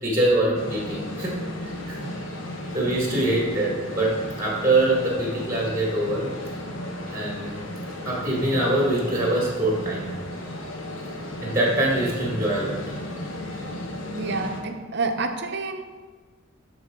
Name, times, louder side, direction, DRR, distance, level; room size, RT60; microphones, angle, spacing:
voice 1, 0.0-2.1 2.7-6.3 7.1-7.6 8.0-10.1 11.4-12.8, right 1 dB, 15° right, -3 dB, 1.5 m, -24 dB
sound 1, 0.5-14.6, left 1 dB, 80° left, 1.0 m, -34 dB
voice 2, 14.1-15.8, right 3 dB, 55° right, 6 dB, 0.6 m, -28 dB
12.0 x 4.1 x 3.6 m, 1.4 s
head